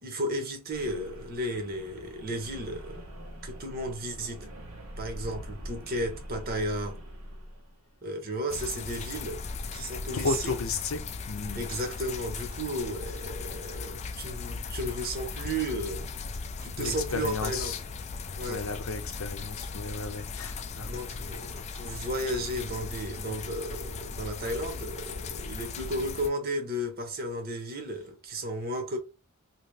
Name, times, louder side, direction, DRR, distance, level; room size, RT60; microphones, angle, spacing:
voice 1, 0.0-3.0 3.4-4.5 5.0-7.0 8.0-9.4 9.7-10.5 11.5-16.1 16.6-17.8 18.3-18.6 20.8-29.0, right 1 dB, 45° right, 0.9 m, -34 dB
sound 1, 0.7-7.9, equal, 90° right, 1.2 m, -43 dB
sound 2, 8.5-26.3, left 4 dB, 30° left, 0.3 m, -38 dB
voice 2, 10.1-11.0 11.3-11.7 14.6-14.7 16.8-17.8 18.5-21.0, left 4 dB, 75° left, 0.6 m, -33 dB
2.9 x 2.7 x 3.2 m
head